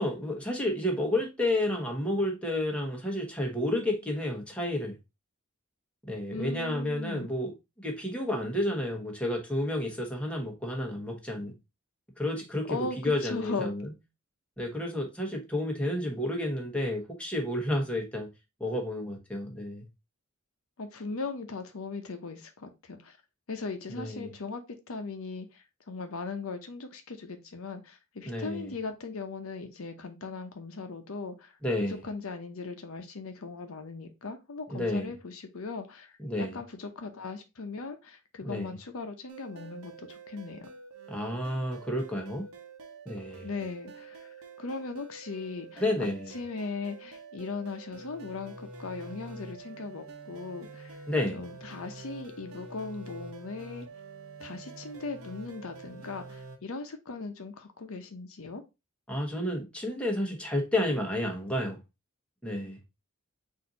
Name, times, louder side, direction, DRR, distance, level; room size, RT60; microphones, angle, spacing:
voice 1, 0.0-5.0 6.0-11.5 12.2-13.9 14.6-18.3 18.6-19.9 23.9-24.3 28.2-28.7 31.6-32.0 34.7-35.1 36.2-36.6 38.4-38.8 41.1-42.5 43.1-43.5 45.8-46.3 51.1-51.4 59.1-61.8 62.4-62.8, left 1 dB, 5° left, 1.0 m, -31 dB
voice 2, 6.3-7.3 12.7-13.7 20.8-23.2 23.5-24.6 24.9-31.5 31.9-40.7 43.4-46.1 46.3-51.0 51.3-53.9 54.4-58.6, left 4 dB, 70° left, 0.7 m, -38 dB
sound 1, 39.3-56.6, right 3 dB, 75° right, 0.9 m, -47 dB
4.3 x 2.7 x 3.9 m
head